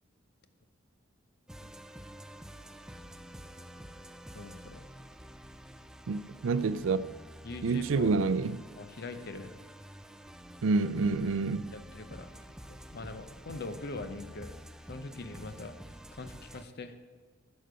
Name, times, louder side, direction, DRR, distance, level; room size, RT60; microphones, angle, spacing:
sound 1, 1.5-16.6, equal, 5° right, 0.4 m, -49 dB
voice 1, 4.3-4.9 7.4-8.1 8.8-9.5 11.7-12.3 12.7-14.5 14.9-15.7 16.1-17.0, left 3 dB, 55° left, 0.7 m, -42 dB
voice 2, 6.1-7.0 7.6-8.6 10.6-11.7, right 4 dB, 80° right, 0.4 m, -28 dB
11.0 x 6.6 x 5.1 m
head